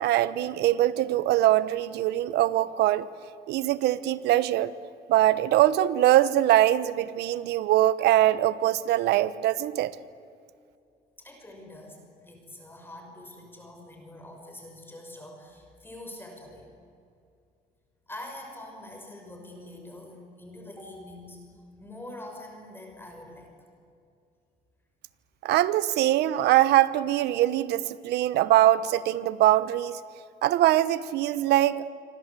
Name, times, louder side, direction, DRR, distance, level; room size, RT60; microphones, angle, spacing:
voice 1, 0.0-3.1 3.5-4.7 5.1-9.9 25.4-30.0 30.4-31.8, right 14 dB, 80° right, 16 dB, 1.0 m, -22 dB
voice 2, 11.2-16.7 18.1-21.4 21.8-23.5, left 1 dB, 15° left, 2 dB, 5.7 m, -44 dB
27.0 x 25.0 x 8.3 m, 2.4 s
cardioid pair, 110°, 17 cm